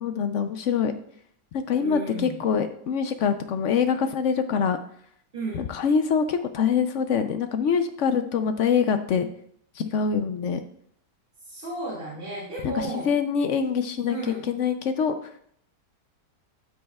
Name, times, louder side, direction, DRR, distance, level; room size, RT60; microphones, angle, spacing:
voice 1, 0.0-0.9 1.5-4.8 5.5-9.3 9.8-10.6 12.6-15.2, left 6 dB, 65° left, 8 dB, 0.7 m, -24 dB
voice 2, 1.8-2.4 5.3-5.6 11.4-13.1 14.1-14.4, right 2 dB, 35° right, -8 dB, 2.4 m, -34 dB
12.5 x 6.3 x 2.3 m, 0.66 s
omnidirectional pair, 1.7 m